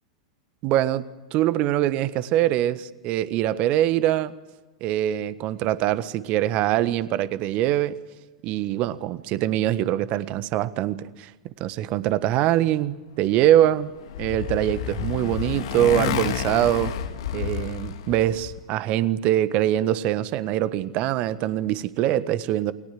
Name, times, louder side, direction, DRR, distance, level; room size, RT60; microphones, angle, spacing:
voice 1, 0.6-1.1 1.3-4.3 4.8-8.0 8.4-11.3 11.6-13.9 14.2-16.9 17.3-22.7, right 13 dB, 45° right, 14 dB, 1.4 m, -23 dB
Motorcycle, 13.6-18.6, left 10 dB, 65° left, 1.7 m, -30 dB
29.0 x 22.0 x 7.7 m, 1.2 s
figure-of-eight pair, 95°, 3 cm